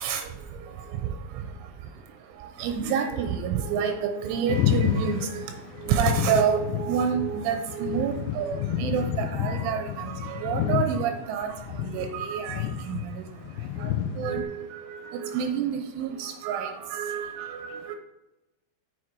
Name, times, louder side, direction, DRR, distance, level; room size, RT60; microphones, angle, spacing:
voice 1, 0.0-18.0, right 7 dB, 85° right, 6 dB, 3.1 m, -29 dB
sound 1, 4.5-11.0 11.4-14.4, left 9 dB, 85° left, 2.8 m, -29 dB
7.4 x 6.5 x 4.6 m, 0.98 s
omnidirectional pair, 5.7 m